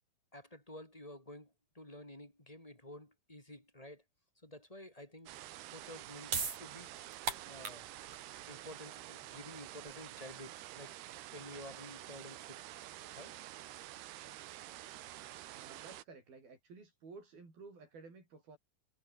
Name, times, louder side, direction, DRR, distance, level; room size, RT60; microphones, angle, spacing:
voice 1, 0.3-4.0 4.4-5.3 5.7-7.9 8.5-11.0 11.3-12.6 13.2-13.4, left 1 dB, 10° left, 3.8 m, -51 dB
sound 1, 5.3-16.0, right 14 dB, 85° right, 3.3 m, -49 dB
sound 2, 5.9-12.6, right 5 dB, 45° right, 5.7 m, -43 dB
voice 2, 15.5-18.6, right 4 dB, 65° right, 9.7 m, -54 dB
omnidirectional pair, 4.5 m